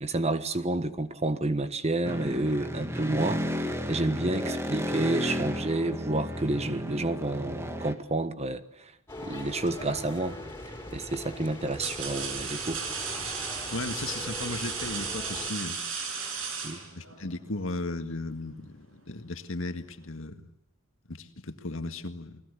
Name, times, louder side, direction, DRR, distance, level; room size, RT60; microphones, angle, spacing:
voice 1, 0.0-8.9 9.2-12.8 16.6-16.8, right 2 dB, 30° right, 11 dB, 1.3 m, -30 dB
sound 1, 2.0-8.0, equal, 15° right, 2.0 m, -32 dB
sound 2, 9.1-15.5, left 1 dB, 15° left, 5.2 m, -41 dB
sound 3, 10.2-10.5 11.3-17.3, right 5 dB, 75° right, 6.0 m, -35 dB
voice 2, 13.7-15.8 16.8-20.4 21.1-22.4, left 2 dB, 70° left, 8 dB, 1.9 m, -36 dB
29.5 x 21.0 x 8.3 m, 0.73 s
head